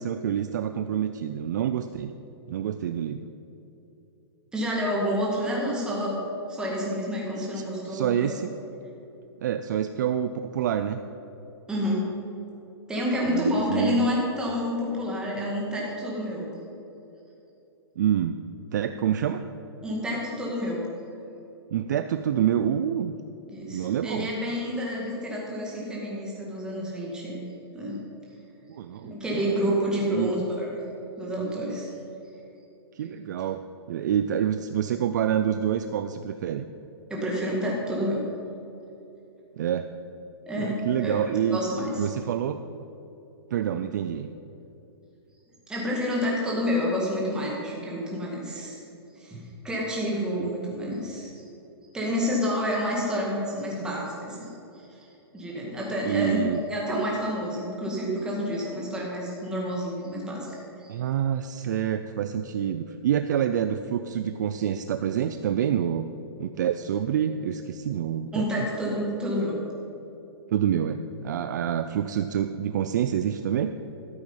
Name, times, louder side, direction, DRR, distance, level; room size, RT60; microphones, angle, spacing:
voice 1, 0.0-2.1 2.5-3.2 7.4-8.5 9.4-11.0 13.3-14.1 18.0-18.4 18.7-19.4 21.7-23.1 23.7-24.3 28.7-29.1 30.1-30.3 32.9-36.7 39.6-39.9 40.6-41.6 42.0-42.6 43.5-44.3 50.4-50.5 56.0-56.6 60.9-66.1 66.4-68.5 70.5-73.7, right 9 dB, 45° right, 9 dB, 0.4 m, -27 dB
voice 2, 4.5-6.2 6.5-8.4 11.7-12.1 12.9-16.5 19.8-20.8 23.5-27.4 27.7-28.0 29.0-30.8 31.2-31.9 37.1-38.2 40.5-41.2 41.5-42.1 45.7-48.8 49.2-51.4 51.9-55.1 55.3-56.4 56.7-61.0 68.3-69.6, equal, 5° right, -4 dB, 1.9 m, -29 dB
13.0 x 8.0 x 5.5 m, 2.9 s
hypercardioid pair, 170°, 14 cm